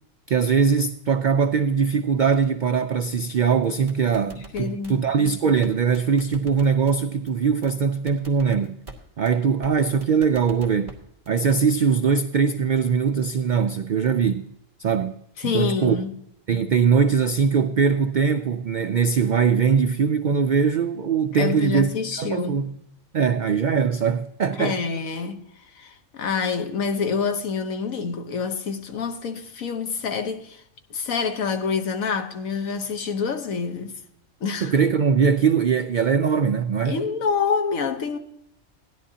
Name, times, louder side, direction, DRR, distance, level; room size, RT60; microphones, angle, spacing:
voice 1, 0.3-8.8 9.2-11.0 11.3-14.5 14.8-15.1 15.4-16.0 16.5-21.9 22.2-22.8 23.1-24.8 34.6-37.0, right 6 dB, 80° right, 0.4 m, -21 dB
sound 1, 3.6-4.9 5.3-5.4 5.6-5.7 5.9-6.9 7.3-7.4 7.6-7.7 8.1-9.0 9.3-9.4 9.6-9.7 10.0-10.9 11.3-11.6, right 3 dB, 25° right, 2.0 m, -42 dB
voice 2, 4.3-5.0 15.4-16.1 21.4-22.6 24.6-25.4 25.7-30.6 30.9-34.0 34.4-34.7 36.9-38.2, left 5 dB, 90° left, 1.4 m, -27 dB
16.0 x 11.0 x 2.8 m
omnidirectional pair, 1.4 m